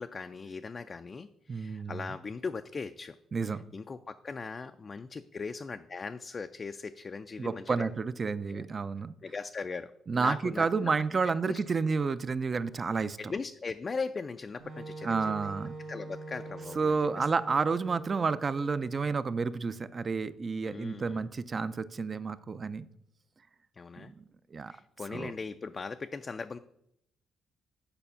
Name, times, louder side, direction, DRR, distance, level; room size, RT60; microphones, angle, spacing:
voice 1, 0.0-3.2 3.4-7.9 8.5-8.6 9.2-10.9 11.4-11.6 13.2-15.5 15.9-17.3 20.6-21.2 23.8-24.1 24.7-26.6, left 4 dB, 35° left, 8 dB, 0.3 m, -39 dB
voice 2, 1.5-2.1 3.3-3.6 7.4-9.1 10.1-13.2 15.0-15.7 16.8-22.9 24.0-24.2 24.5-24.7 25.1-25.3, right 4 dB, 35° right, 14 dB, 0.4 m, -30 dB
Wind instrument woodwind instrument, 14.6-19.3, right 3 dB, 80° right, 1.7 m, -44 dB
6.9 x 5.0 x 5.5 m, 0.78 s
cardioid pair, 90°, 0 cm